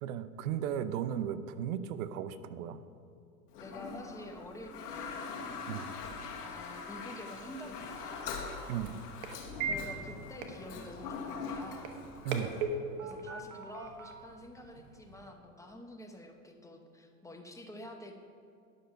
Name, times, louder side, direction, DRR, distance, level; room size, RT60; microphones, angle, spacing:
voice 1, 0.0-2.8 5.7-5.9 8.7-9.0 12.2-12.5, right 9 dB, 65° right, 11 dB, 0.8 m, -35 dB
Toilet flush, 3.5-12.6, left 4 dB, 85° left, 1.6 m, -42 dB
voice 2, 3.6-5.4 6.4-8.4 9.6-11.9 13.0-18.2, left 1 dB, 5° left, 3 dB, 0.9 m, -48 dB
sound 1, 7.4-15.3, right 4 dB, 50° right, 1.3 m, -41 dB
11.0 x 6.4 x 5.7 m, 2.5 s
supercardioid pair, 120°, 45 cm